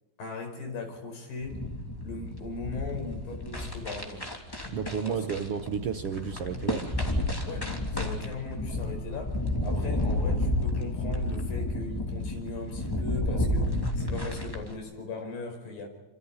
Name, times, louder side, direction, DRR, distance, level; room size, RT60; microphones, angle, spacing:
voice 1, 0.2-1.6 2.0-4.3 5.1-5.3 7.5-15.9, left 3 dB, 80° left, 4 dB, 6.7 m, -38 dB
sound 1, 1.4-14.8, left 1 dB, 5° left, 2.5 m, -31 dB
voice 2, 4.7-6.9, right 7 dB, 65° right, 7 dB, 1.5 m, -32 dB
28.0 x 26.5 x 4.3 m, 1.1 s
omnidirectional pair, 4.0 m